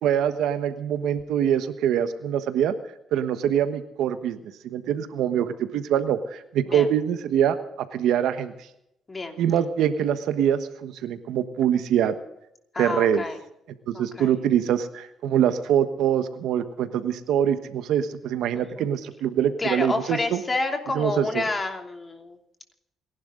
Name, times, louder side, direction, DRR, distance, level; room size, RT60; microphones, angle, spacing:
voice 1, 0.0-2.7 3.1-4.4 4.6-8.5 9.4-12.1 12.8-13.2 13.9-20.4 20.9-21.4, right 9 dB, 85° right, 10 dB, 1.3 m, -24 dB
voice 2, 9.1-9.4 12.7-13.4 13.9-14.3 18.8-18.9 19.6-22.4, left 2 dB, 25° left, 4 dB, 2.9 m, -29 dB
28.5 x 11.5 x 3.9 m, 0.83 s
cardioid pair, 90°, 0 cm